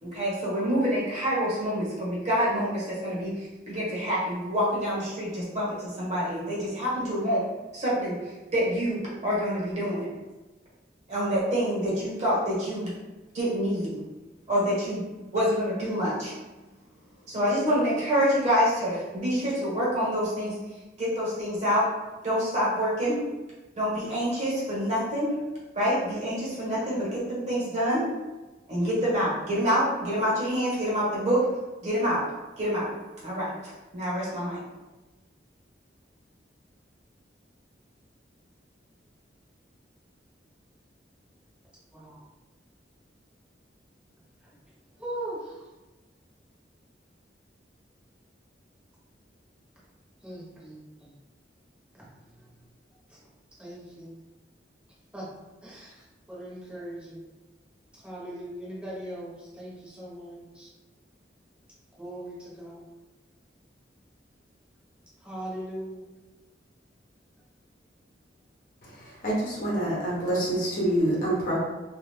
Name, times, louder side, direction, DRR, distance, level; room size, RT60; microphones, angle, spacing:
voice 1, 0.0-7.4 7.7-10.1 11.1-12.9 13.3-14.0 14.5-15.0 15.3-16.3 17.3-20.6 21.0-21.8 22.2-23.1 23.7-25.3 25.7-28.0 28.7-31.4 31.8-32.2 32.6-32.9 33.2-34.6, equal, 40° right, -7 dB, 1.2 m, -27 dB
voice 2, 41.9-42.2 44.4-44.5 44.9-45.7 50.2-51.1 52.0-52.5 53.1-53.2 53.6-54.2 55.1-55.3 55.6-57.3 57.9-60.7 62.0-62.8 65.2-66.1, right 1 dB, 5° right, -8 dB, 1.0 m, -40 dB
voice 3, 69.0-71.6, right 1 dB, 50° left, -5 dB, 0.9 m, -26 dB
2.5 x 2.4 x 3.4 m, 1.1 s
head